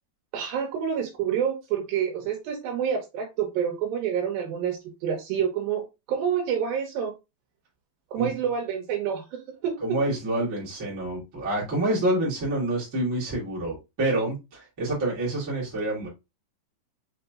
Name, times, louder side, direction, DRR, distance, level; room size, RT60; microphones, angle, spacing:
voice 1, 0.3-7.1 8.1-9.8, right 8 dB, 80° right, 3 dB, 2.7 m, -28 dB
voice 2, 9.8-16.1, right 1 dB, 25° right, -6 dB, 2.1 m, -27 dB
5.7 x 3.9 x 2.3 m, 0.24 s
omnidirectional pair, 4.1 m